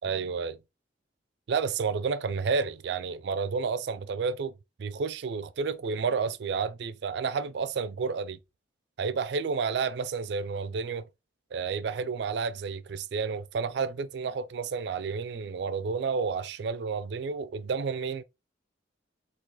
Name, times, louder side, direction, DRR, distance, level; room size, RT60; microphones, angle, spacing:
voice 1, 0.0-0.6 1.5-4.5 4.8-8.4 9.0-11.1 11.5-18.2, right 5 dB, 65° right, 0.3 m, -30 dB
3.6 x 2.3 x 3.0 m
head